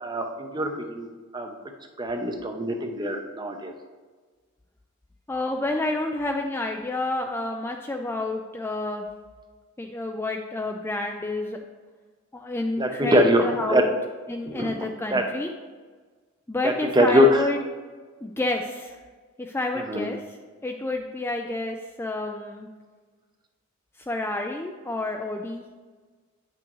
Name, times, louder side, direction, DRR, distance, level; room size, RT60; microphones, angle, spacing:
voice 1, 0.0-1.1 1.3-1.5 2.0-3.7 12.8-13.4 13.7-13.8 14.5-14.7 15.1-15.2 16.6-17.3 19.9-20.1, equal, 20° right, 4 dB, 0.7 m, -23 dB
voice 2, 5.3-9.1 9.8-11.6 12.3-13.9 14.3-15.5 16.5-17.6 18.2-19.0 19.4-22.7 24.0-25.6, left 2 dB, 10° left, 2 dB, 0.3 m, -29 dB
8.9 x 6.1 x 3.0 m, 1.4 s
head